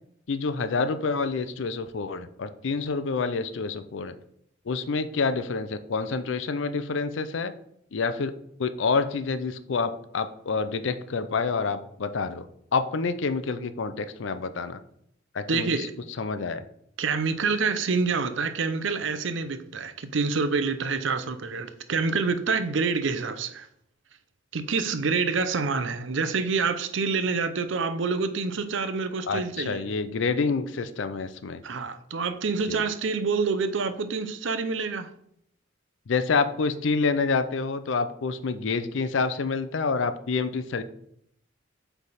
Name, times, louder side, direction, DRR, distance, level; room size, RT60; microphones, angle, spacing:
voice 1, 0.3-4.1 4.7-7.5 7.9-8.3 8.6-12.5 12.7-14.8 15.3-15.9 16.2-16.6 29.3-31.6 32.7-32.8 36.1-40.8, left 4 dB, 70° left, 11 dB, 0.5 m, -28 dB
voice 2, 15.5-15.9 17.0-23.7 24.5-29.9 31.6-35.1, right 4 dB, 70° right, 11 dB, 0.6 m, -27 dB
8.4 x 3.4 x 4.1 m, 0.71 s
head